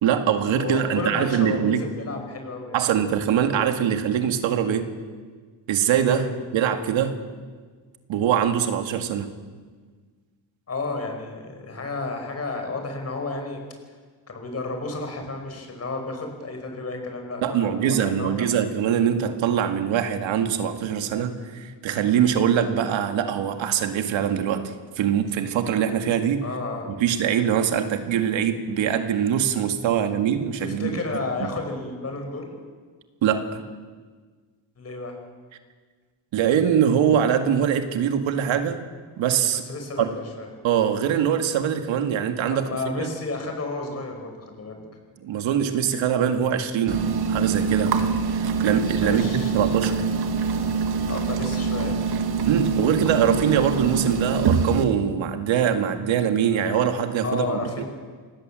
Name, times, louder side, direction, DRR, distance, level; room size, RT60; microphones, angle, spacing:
voice 1, 0.0-1.9 2.7-4.9 5.7-6.3 6.5-7.2 8.1-9.3 17.4-26.5 26.9-31.6 33.2-33.6 36.3-38.8 39.2-39.6 40.0-40.1 40.6-42.7 43.0-43.1 45.2-50.1 52.5-57.8, right 8 dB, 85° right, 7 dB, 2.0 m, -23 dB
voice 2, 0.6-2.8 6.1-6.3 10.7-13.6 14.3-18.5 26.4-26.9 30.6-32.5 34.8-35.2 39.5-40.1 40.4-40.5 42.5-44.8 49.0-49.6 51.1-52.0 57.2-57.9, left 3 dB, 35° left, 4 dB, 5.3 m, -32 dB
sound 1, 46.9-54.8, right 5 dB, 55° right, 1.9 m, -24 dB
25.5 x 18.5 x 7.6 m, 1.5 s
cardioid pair, 140°, 45 cm